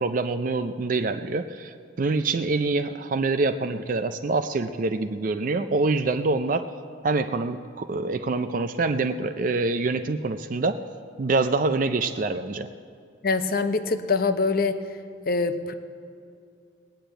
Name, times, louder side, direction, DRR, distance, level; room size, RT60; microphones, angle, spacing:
voice 1, 0.0-6.7 7.0-10.8 11.2-12.7, right 3 dB, 45° right, 9 dB, 0.4 m, -25 dB
voice 2, 13.2-14.8 15.3-15.7, left 4 dB, 50° left, 10 dB, 0.7 m, -24 dB
20.0 x 7.0 x 9.0 m, 2.3 s
head